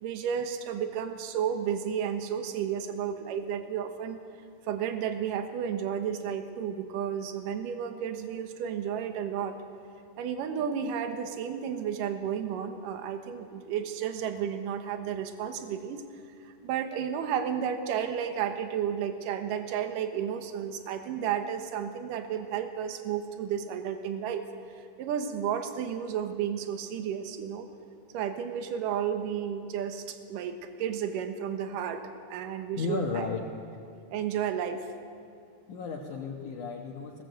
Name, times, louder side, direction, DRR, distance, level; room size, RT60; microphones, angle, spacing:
voice 1, 0.0-4.2 4.7-9.6 10.2-16.0 16.4-24.4 24.8-27.7 28.1-32.0 32.3-33.3 34.1-34.8, right 8 dB, 70° right, 7 dB, 2.6 m, -32 dB
voice 2, 32.7-33.5 35.7-37.2, left 4 dB, 65° left, -1 dB, 2.4 m, -34 dB
19.5 x 17.0 x 7.8 m, 2.3 s
omnidirectional pair, 4.4 m